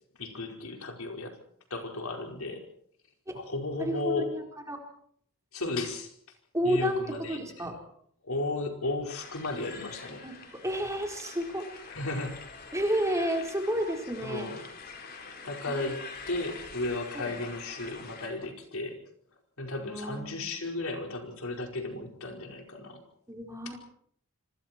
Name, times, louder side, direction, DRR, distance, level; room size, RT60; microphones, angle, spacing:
voice 1, 0.2-1.4 1.7-2.6 3.3-4.3 5.5-6.1 6.6-7.4 8.2-10.2 11.9-12.4 14.2-14.6 15.4-19.0 19.6-23.0, left 2 dB, 75° left, 3 dB, 5.0 m, -34 dB
voice 2, 3.8-4.8 6.5-7.0 7.3-7.7 9.5-9.6 10.2-11.9 12.7-14.5 15.7-15.9 17.1-17.4 19.8-20.5 23.3-23.8, right 1 dB, 15° right, 2 dB, 4.4 m, -31 dB
sound 1, 9.1-18.3, left 4 dB, 45° left, 4.7 m, -45 dB
27.0 x 26.5 x 4.5 m, 0.62 s
head